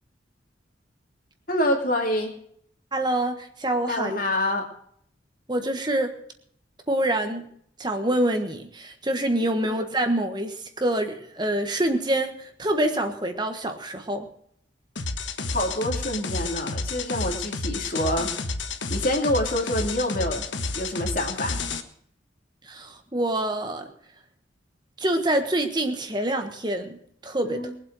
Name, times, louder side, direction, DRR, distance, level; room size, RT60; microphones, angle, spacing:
voice 1, 1.5-2.3 3.9-4.6 9.6-9.8 15.5-18.3 18.9-20.5 20.7-21.6 27.4-27.7, left 1 dB, 45° left, 2 dB, 2.8 m, -26 dB
voice 2, 2.9-4.2 5.5-6.1 6.9-7.5 7.8-14.3 22.6-23.9 25.0-27.0 27.2-27.6, right 1 dB, 25° right, 5 dB, 1.4 m, -26 dB
sound 1, 15.0-21.8, left 3 dB, 80° left, 1.4 m, -30 dB
22.0 x 8.0 x 6.3 m, 0.65 s
head